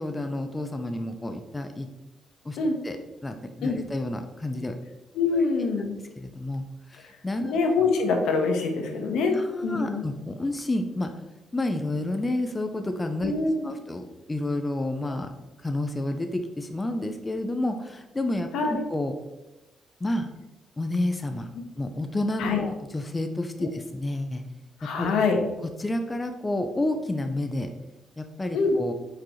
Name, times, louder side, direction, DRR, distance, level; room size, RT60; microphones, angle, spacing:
voice 1, 0.0-1.9 2.5-2.6 2.8-3.0 3.2-4.7 5.3-5.4 6.2-6.6 6.9-7.6 9.3-11.1 11.5-13.3 13.6-14.0 14.3-15.3 15.6-19.1 20.0-20.3 20.8-21.5 21.8-24.4 25.0-25.1 25.8-27.7 28.2-28.9, left 1 dB, 15° left, 6 dB, 0.5 m, -30 dB
voice 2, 5.1-6.0 7.4-10.1 13.2-13.7 15.1-15.2 18.5-18.8 22.4-22.6 23.6-23.7 24.8-25.4 28.5-28.8, left 4 dB, 85° left, 3 dB, 1.2 m, -25 dB
8.3 x 4.9 x 3.1 m, 1.0 s
cardioid pair, 160°, 0 cm